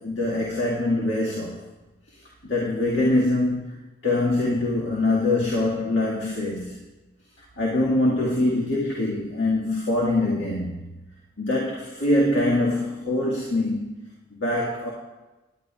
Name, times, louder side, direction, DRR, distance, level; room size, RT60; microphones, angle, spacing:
voice 1, 0.0-1.6 2.4-6.8 7.6-10.8 11.4-13.9 14.3-14.9, left 2 dB, 65° left, -5 dB, 1.9 m, -24 dB
19.0 x 11.0 x 2.4 m, 1.1 s
head